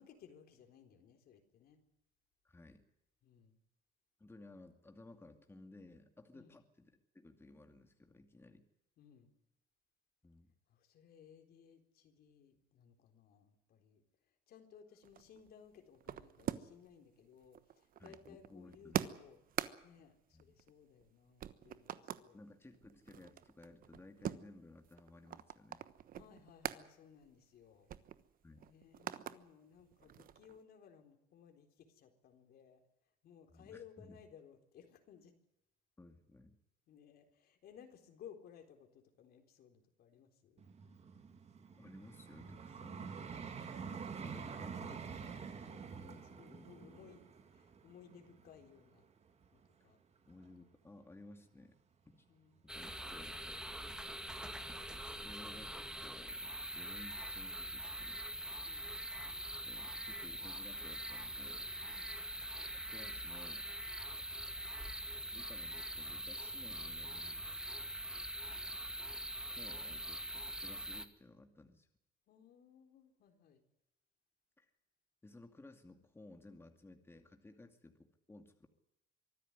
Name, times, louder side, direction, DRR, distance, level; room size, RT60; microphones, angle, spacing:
voice 1, 0.0-1.8 3.2-3.6 6.3-6.5 9.0-9.3 10.7-14.0 14.5-19.4 19.8-22.4 26.1-27.9 28.7-32.8 33.2-35.3 36.9-40.6 42.9-43.4 45.5-49.1 49.5-50.0 52.3-52.6 58.6-58.9 61.8-62.2 72.3-73.6 77.5-77.6, left 8 dB, 65° left, 6 dB, 4.0 m, -60 dB
voice 2, 2.4-2.8 4.2-8.6 10.2-10.5 18.0-19.0 20.3-20.5 22.3-25.9 28.4-28.7 33.5-34.2 36.0-36.6 41.8-43.0 43.9-45.2 45.9-46.2 46.5-47.0 50.3-51.7 52.1-52.2 52.7-53.4 55.0-58.2 59.7-61.7 62.7-63.7 64.3-64.4 65.3-67.4 68.6-68.8 69.5-71.9 74.6-74.7 75.2-78.7, left 2 dB, 15° left, 5 dB, 2.4 m, -57 dB
sound 1, 15.0-16.9 17.2-21.1 21.4-22.3 22.7-26.8 27.2-27.4 27.6-29.4 29.8-30.6, right 10 dB, 55° right, 1.2 m, -44 dB
Vehicle, 40.6-49.7 50.3-50.5, right 6 dB, 40° right, 2.8 m, -48 dB
sound 2, 52.7-71.1, right 1 dB, 5° right, 2.0 m, -43 dB
24.0 x 13.5 x 9.9 m, 0.86 s
cardioid pair, 110°, 17 cm